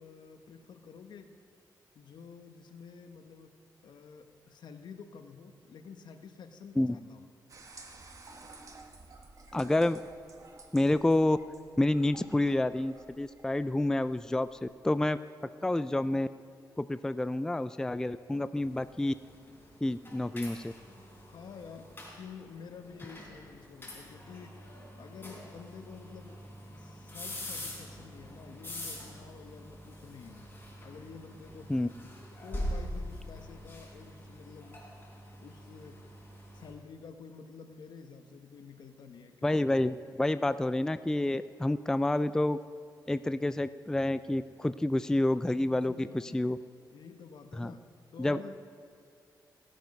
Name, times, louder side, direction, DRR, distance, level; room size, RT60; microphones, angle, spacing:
voice 1, 0.0-1.4 1.9-3.5 3.8-7.3 21.3-26.4 26.7-30.5 30.8-31.9 32.4-34.8 35.4-36.1 36.5-39.8 45.7-46.6 46.9-47.8 48.1-48.5, left 5 dB, 75° left, 7 dB, 1.0 m, -49 dB
sound 1, 7.5-14.7, right 3 dB, 45° right, 1.4 m, -53 dB
voice 2, 9.5-10.0 10.7-11.4 11.8-15.2 15.6-16.3 16.8-19.1 19.8-20.7 31.7-31.9 39.4-42.6 43.1-46.6 47.6-47.7 48.2-48.4, left 1 dB, 10° left, 13 dB, 0.3 m, -28 dB
sound 2, 18.6-36.7, left 1 dB, 25° left, 4.1 m, -44 dB
17.5 x 9.0 x 5.4 m, 2.4 s
cardioid pair, 85°, 8 cm